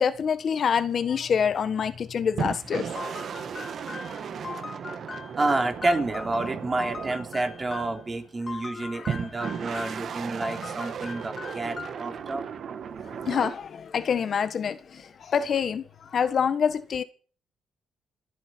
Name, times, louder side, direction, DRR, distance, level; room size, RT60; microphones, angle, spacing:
voice 1, 0.0-3.2 4.1-4.2 8.7-9.1 13.0-17.0, left 7 dB, 55° left, 1.4 m, -27 dB
sound 1, 2.4-8.3 9.1-13.6, right 7 dB, 55° right, 1.5 m, -35 dB
sound 2, 3.0-8.0 8.5-10.1 10.4-12.1, left 4 dB, 35° left, 1.7 m, -40 dB
voice 2, 5.4-12.4, right 2 dB, 25° right, 3.6 m, -29 dB
28.0 x 9.9 x 4.6 m
cardioid pair, 90°, 0 cm